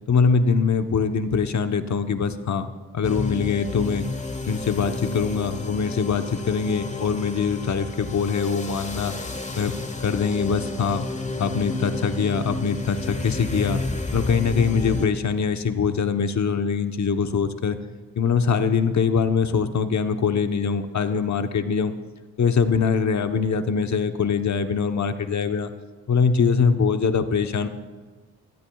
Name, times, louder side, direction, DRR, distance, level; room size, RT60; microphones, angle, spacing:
voice 1, 0.1-4.1 4.5-9.1 9.5-9.8 10.0-11.1 11.4-13.8 14.1-17.8 18.1-21.9 22.4-25.7 26.1-27.7, left 5 dB, 55° left, 8 dB, 1.0 m, -23 dB
sound 1, 3.0-15.1, left 3 dB, 20° left, 1.3 m, -31 dB
19.0 x 14.0 x 2.4 m, 1.3 s
supercardioid pair, 50°, 34 cm